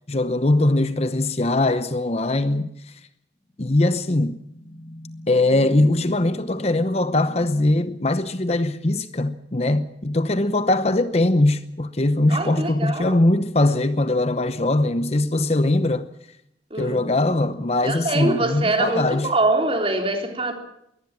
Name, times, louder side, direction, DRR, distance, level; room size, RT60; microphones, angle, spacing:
voice 1, 0.1-2.7 3.6-4.4 5.3-16.1 16.8-19.3, left 2 dB, 35° left, 0.8 m, -21 dB
sound 1, 3.5-10.0, left 1 dB, 20° left, 2.4 m, -44 dB
voice 2, 12.3-13.2 16.7-17.0 17.8-20.5, right 2 dB, 30° right, 3.6 m, -23 dB
22.0 x 18.5 x 7.4 m
head